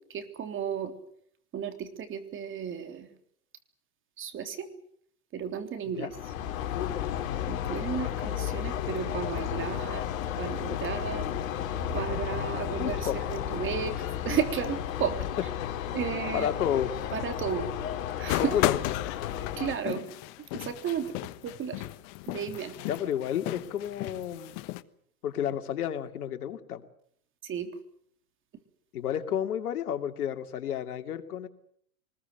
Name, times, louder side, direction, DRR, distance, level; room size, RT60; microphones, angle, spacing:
voice 1, 0.1-0.9 1.5-3.1 4.2-4.7 5.3-6.1 7.5-10.0 10.4-11.3 11.9-14.0 14.2-15.2 15.9-16.5 17.1-17.7 18.2-18.6 19.6-20.1 20.5-21.1 21.4-21.8 22.3-22.7 27.4-27.7, right 8 dB, 25° right, 8 dB, 3.5 m, -33 dB
sound 1, 6.1-19.7, left 10 dB, 55° left, 3.5 m, -33 dB
voice 2, 12.8-13.2 16.3-16.9 18.4-18.8 22.8-24.6 25.2-26.9 28.9-31.5, left 9 dB, 75° left, 8 dB, 2.7 m, -31 dB
sound 2, 18.3-24.8, left 17 dB, 40° left, 1.3 m, -34 dB
24.5 x 21.0 x 8.0 m, 0.66 s
hypercardioid pair, 125°, 45 cm